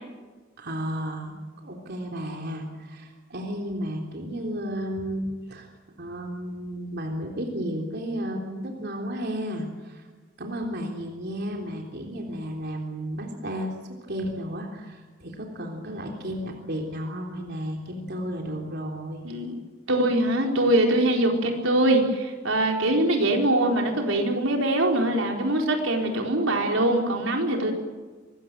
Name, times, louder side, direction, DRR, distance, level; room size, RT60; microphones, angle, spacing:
voice 1, 0.6-1.3 1.6-5.7 6.0-10.1 10.4-13.7 14.1-19.2, equal, 55° right, 1 dB, 3.6 m, -33 dB
voice 2, 19.2-19.6 19.9-27.7, right 1 dB, 80° right, 2 dB, 4.4 m, -23 dB
25.0 x 21.0 x 7.7 m, 1.4 s
head